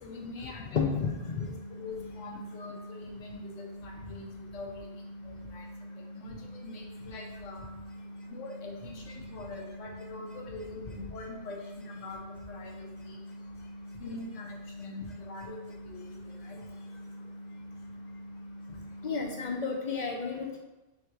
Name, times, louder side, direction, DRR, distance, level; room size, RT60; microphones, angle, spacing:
voice 1, 0.0-0.9 1.7-4.8 5.2-5.6 6.1-7.7 8.3-12.2 12.5-13.2 14.0-16.0 16.4-16.6, left 3 dB, 90° left, 0 dB, 1.0 m, -44 dB
voice 2, 0.7-1.5 19.0-20.6, left 5 dB, 55° left, 0 dB, 0.5 m, -31 dB
sound 1, 0.8-19.5, equal, 15° left, 1.1 m, -45 dB
3.7 x 2.8 x 4.6 m, 1.0 s
omnidirectional pair, 1.2 m